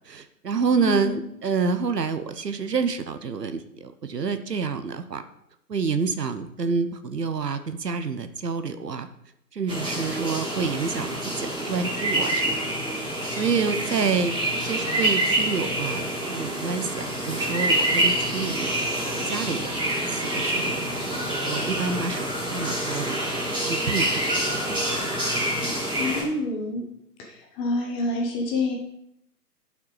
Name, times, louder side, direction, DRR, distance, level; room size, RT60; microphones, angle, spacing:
voice 1, 0.0-5.2 5.7-9.1 9.5-12.7 13.3-18.7 19.1-19.7 20.1-20.8 21.4-22.3 22.5-23.2 23.6-24.8, right 5 dB, 75° right, 10 dB, 1.1 m, -28 dB
voice 2, 0.8-1.2 26.0-26.9 27.2-28.7, left 2 dB, 10° left, 0 dB, 0.9 m, -27 dB
sound 1, 9.7-26.2, right 1 dB, 10° right, 2.7 m, -27 dB
12.0 x 5.8 x 4.9 m, 0.77 s
figure-of-eight pair, 135°, 49 cm